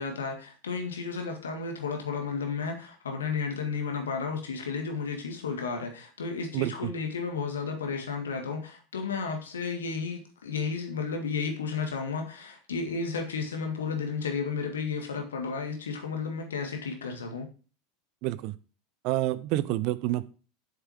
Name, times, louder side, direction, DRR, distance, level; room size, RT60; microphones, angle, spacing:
voice 1, 0.0-17.5, left 5 dB, 75° left, 1.8 m, -33 dB
voice 2, 18.2-18.5 19.0-20.3, right 16 dB, 50° right, 0.6 m, -28 dB
7.7 x 6.8 x 4.5 m
figure-of-eight pair, 80°, 0 cm